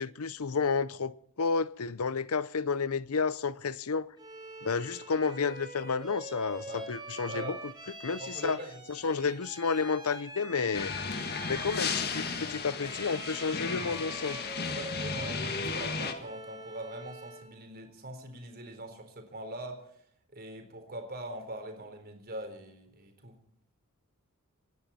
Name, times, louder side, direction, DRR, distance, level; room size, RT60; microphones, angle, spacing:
voice 1, 0.0-4.1 4.6-7.6 8.0-8.6 8.9-10.9 11.5-14.4, left 5 dB, 75° left, 0.7 m, -31 dB
Bowed string instrument, 4.2-17.5, right 2 dB, 20° right, 4.1 m, -45 dB
voice 2, 8.2-8.8 14.7-19.9 20.3-23.4, right 1 dB, 45° right, 4.0 m, -42 dB
sound 1, 10.7-16.1, left 5 dB, 45° left, 1.8 m, -34 dB
26.0 x 11.0 x 4.3 m
head